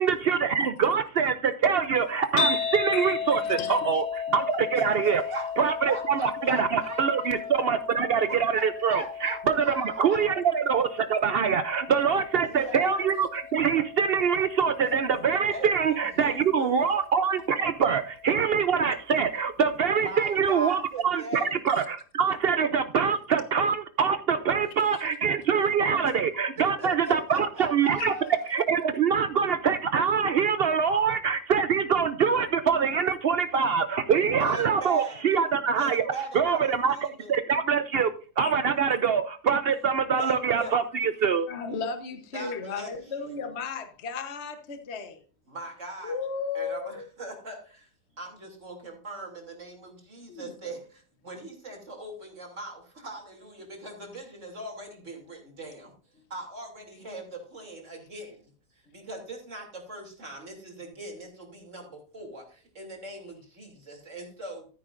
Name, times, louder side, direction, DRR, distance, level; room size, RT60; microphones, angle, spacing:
voice 1, 0.0-5.2 5.6-28.1 28.5-36.1 36.3-36.9 37.3-38.1 38.4-41.5, right 6 dB, 90° right, 0.5 m, -24 dB
sound 1, 2.4-18.6, left 6 dB, 80° left, 2.8 m, -35 dB
voice 2, 2.9-4.0 4.3-4.4 21.7-21.9 24.9-25.0 28.0-28.1 38.4-38.5 41.5-45.2 46.0-47.0 50.3-50.7, left 5 dB, 45° left, 1.3 m, -35 dB
voice 3, 4.7-9.4 9.6-10.2 12.4-13.1 15.5-16.7 19.8-21.6 26.0-26.1 26.8-28.5 34.4-35.2 35.8-37.3 40.2-40.8 41.2-41.3 42.3-42.9 45.5-46.2 46.5-47.9 48.2-55.9 56.3-58.4 58.7-64.7, right 2 dB, 45° right, 3.1 m, -40 dB
13.5 x 9.8 x 2.5 m
omnidirectional pair, 1.8 m